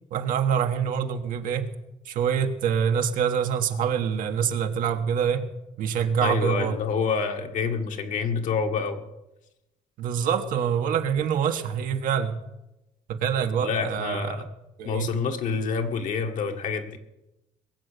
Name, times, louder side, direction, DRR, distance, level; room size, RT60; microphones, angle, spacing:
voice 1, 0.1-1.7 2.0-5.5 5.8-6.8 10.0-12.4 13.1-14.4 14.8-15.2, right 7 dB, 75° right, 6 dB, 1.4 m, -25 dB
voice 2, 6.2-9.1 13.6-14.4 14.8-17.0, left 5 dB, 65° left, 5 dB, 1.7 m, -27 dB
21.5 x 7.8 x 6.7 m, 0.94 s
cardioid pair, 105°, 14 cm